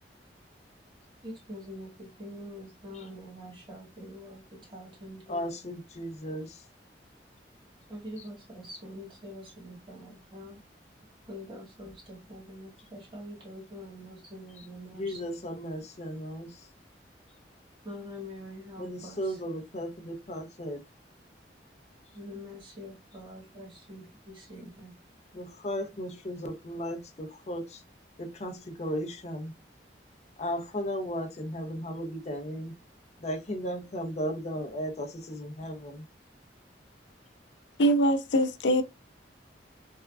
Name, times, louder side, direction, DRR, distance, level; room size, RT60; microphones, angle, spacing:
voice 1, 1.2-5.7 7.9-10.6 11.3-15.3 17.8-19.4 22.1-24.9, equal, 30° right, 1.5 m, -45 dB
voice 2, 5.3-6.6 14.9-16.6 18.8-20.8 25.3-27.8 28.2-29.5 30.4-32.7 33.2-36.0, equal, 40° left, 0.6 m, -35 dB
voice 3, 37.8-38.8, right 1 dB, 85° left, 0.5 m, -23 dB
3.5 x 2.3 x 2.3 m
head